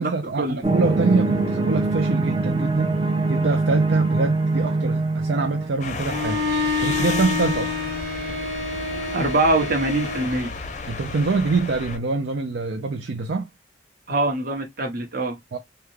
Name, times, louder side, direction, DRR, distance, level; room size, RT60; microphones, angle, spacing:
voice 1, 0.0-3.0 3.3-6.4 6.8-7.7 10.9-13.5 15.5-15.6, right 3 dB, 65° right, 0.5 m, -25 dB
sound 1, 0.6-5.7, right 3 dB, 25° right, 0.7 m, -23 dB
sound 2, 5.8-12.0, left 4 dB, 40° left, 0.6 m, -33 dB
Bowed string instrument, 6.0-10.5, left 3 dB, 85° right, 0.9 m, -27 dB
voice 2, 9.1-10.5 14.1-15.4, right 2 dB, 50° right, 1.1 m, -23 dB
3.5 x 2.2 x 3.1 m
head